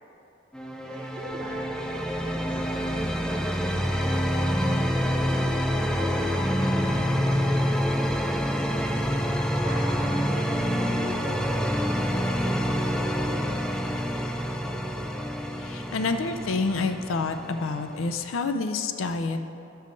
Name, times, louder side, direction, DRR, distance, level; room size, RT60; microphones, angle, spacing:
sound 1, 0.5-18.3, equal, 5° left, 0.3 m, -27 dB
voice 1, 0.8-5.1 5.8-8.8 9.5-13.7, right 2 dB, 40° right, -5 dB, 0.8 m, -43 dB
voice 2, 15.6-19.4, left 3 dB, 85° left, 7 dB, 0.5 m, -28 dB
12.5 x 5.6 x 3.8 m, 2.6 s
head